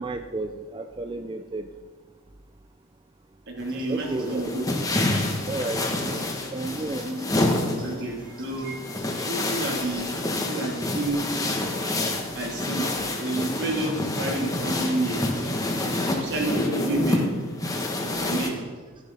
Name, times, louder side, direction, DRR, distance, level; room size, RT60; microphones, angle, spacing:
voice 1, 0.0-1.7 3.9-4.4 5.5-6.2 6.5-7.9 9.6-10.0 11.6-11.7 12.6-13.0 16.0-16.4 18.2-18.3, right 2 dB, 25° right, 7 dB, 0.5 m, -34 dB
voice 2, 3.5-4.6 6.0-6.2 7.0-7.2 7.8-8.8 9.3-11.4 12.3-12.9 13.2-15.2 15.8-17.3 17.9-18.6, right 2 dB, 60° right, 0 dB, 2.8 m, -30 dB
sound 1, 3.6-18.5, left 1 dB, 15° left, 1.6 m, -28 dB
13.5 x 11.0 x 5.3 m, 1.5 s
head